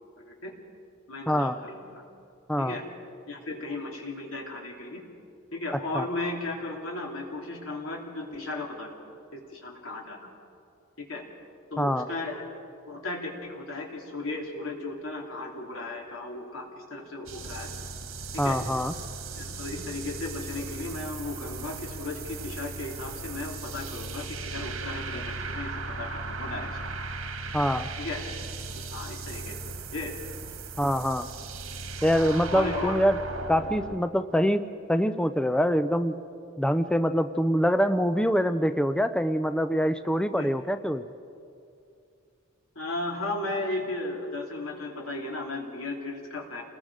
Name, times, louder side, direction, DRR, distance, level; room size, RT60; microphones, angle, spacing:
voice 1, 1.1-2.0 2.6-2.8 3.3-5.0 5.5-8.9 9.3-10.3 11.0-11.2 11.7-12.5 12.9-17.7 18.3-18.6 19.4-26.7 28.0-28.3 28.9-29.6 29.9-30.1 32.1-33.0 40.4-40.5 42.7-46.6, left 2 dB, 90° left, 0 dB, 3.3 m, -35 dB
sound 1, 17.3-34.0, right 3 dB, 85° right, 1.6 m, -37 dB
voice 2, 18.4-18.9 27.5-27.9 30.8-31.2 32.0-33.2 33.5-34.6 34.9-36.1 36.6-41.0, equal, 5° left, 11 dB, 0.5 m, -24 dB
29.0 x 20.5 x 5.0 m, 2.5 s
head